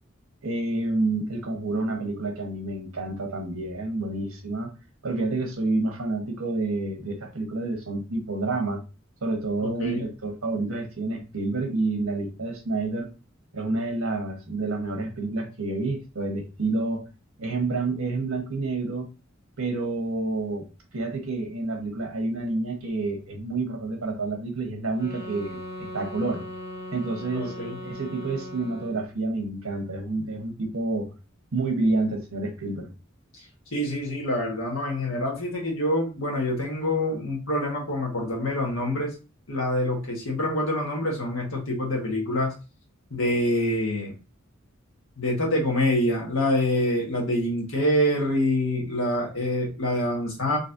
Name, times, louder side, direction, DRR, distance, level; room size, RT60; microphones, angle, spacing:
voice 1, 0.4-4.7 5.0-8.8 9.2-13.1 13.5-17.0 17.4-19.1 19.6-20.7 20.9-25.6 25.9-26.4 26.9-27.5 27.8-31.1 31.5-32.9, right 2 dB, 80° right, 3 dB, 1.2 m, -28 dB
voice 2, 9.6-10.1 27.3-27.8 33.7-39.1 39.5-42.5 43.1-44.2 45.2-50.6, left 1 dB, 70° left, -1 dB, 1.5 m, -26 dB
sound 1, 24.9-29.1, left 1 dB, 45° left, 1.7 m, -38 dB
4.1 x 3.3 x 2.6 m, 0.30 s
head